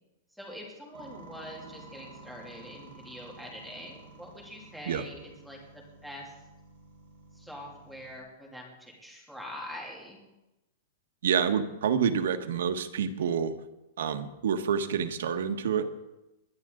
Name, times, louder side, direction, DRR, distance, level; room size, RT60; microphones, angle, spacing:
voice 1, 0.3-6.3 7.3-10.2, equal, ahead, -3 dB, 2.9 m, -44 dB
sound 1, 0.9-8.2, right 2 dB, 60° right, 5.9 m, -51 dB
voice 2, 11.2-13.5 14.0-15.9, right 7 dB, 75° right, 7 dB, 1.5 m, -28 dB
21.5 x 11.0 x 3.9 m, 0.96 s
supercardioid pair, 170°, 0 cm